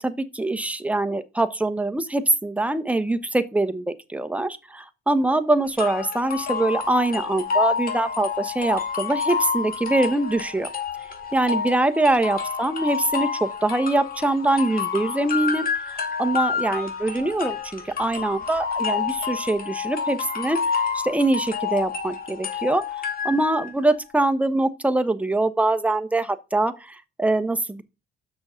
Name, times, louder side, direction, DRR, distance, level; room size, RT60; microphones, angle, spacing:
voice 1, 0.0-3.8 4.1-10.7 11.3-15.7 16.2-20.6 20.9-22.8 23.2-27.8, right 2 dB, 5° right, 1.0 m, -23 dB
sound 1, 5.8-23.7, left 6 dB, 45° left, 2.4 m, -29 dB
6.4 x 6.2 x 6.2 m
cardioid pair, 90°, 20 cm